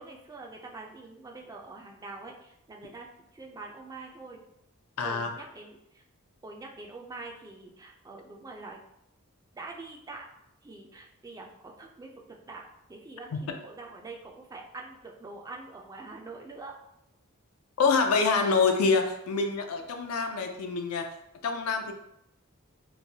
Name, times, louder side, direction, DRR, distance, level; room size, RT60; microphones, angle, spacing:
voice 1, 0.0-3.1 3.3-4.4 5.0-6.0 6.4-8.8 9.5-10.3 10.6-12.6 12.9-16.7, right 3 dB, 15° right, 0 dB, 0.3 m, -44 dB
voice 2, 5.0-5.3 13.3-13.4 17.8-21.1 21.4-21.9, left 4 dB, 85° left, 5 dB, 0.4 m, -26 dB
3.0 x 2.1 x 2.7 m, 0.80 s
head